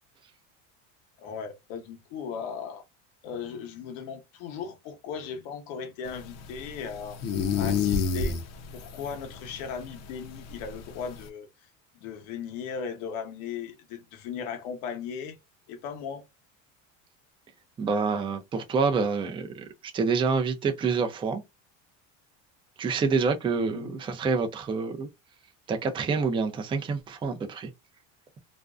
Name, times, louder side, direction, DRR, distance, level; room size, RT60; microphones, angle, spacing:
voice 1, 1.2-2.8 3.2-7.2 7.5-8.4 8.7-11.5 11.9-15.4 15.7-16.2 23.6-24.0, left 6 dB, 80° left, 0.8 m, -37 dB
sound 1, 6.1-11.3, left 6 dB, 45° left, 0.6 m, -31 dB
voice 2, 17.8-19.6 19.9-21.4 22.8-25.1 25.7-27.7, right 5 dB, 15° right, 0.4 m, -27 dB
2.5 x 2.1 x 2.3 m
supercardioid pair, 110°, 38 cm